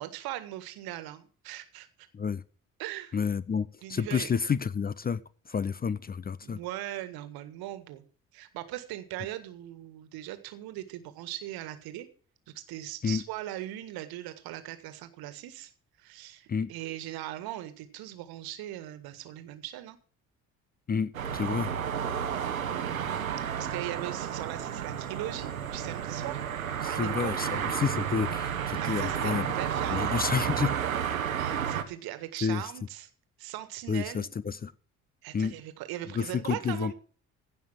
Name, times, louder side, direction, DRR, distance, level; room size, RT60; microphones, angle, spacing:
voice 1, 0.0-1.9 2.8-3.2 3.8-4.3 6.4-8.0 8.3-12.1 12.5-15.7 16.0-20.0 22.7-22.9 23.6-26.4 26.8-27.3 28.8-30.3 31.3-33.1 33.4-34.3 35.2-36.9, right 14 dB, 60° right, 1.7 m, -39 dB
voice 2, 3.1-5.2 5.5-6.6 13.0-13.2 16.5-16.7 20.9-21.7 26.8-29.5 29.9-30.7 32.4-32.6 33.9-34.7 35.3-35.5 36.2-36.9, left 6 dB, 25° left, 0.6 m, -30 dB
sound 1, 21.1-31.8, right 8 dB, 85° right, 1.0 m, -31 dB
16.0 x 5.7 x 7.5 m
figure-of-eight pair, 50°, 41 cm